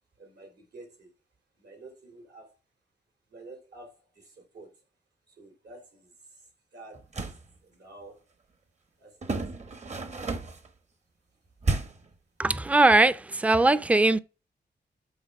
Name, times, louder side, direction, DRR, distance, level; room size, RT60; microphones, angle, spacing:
voice 1, 0.2-1.1 1.6-2.5 3.3-4.7 5.4-6.1 6.7-7.0 7.6-8.2 9.0-9.8, right 2 dB, 90° right, 3.3 m, -49 dB
sound 1, 6.9-7.5 9.2-10.7 11.6-12.1, right 3 dB, 40° right, 0.9 m, -31 dB
voice 2, 12.4-14.2, right 2 dB, 10° right, 0.3 m, -20 dB
8.1 x 3.9 x 4.7 m
wide cardioid pair, 130°, 17 cm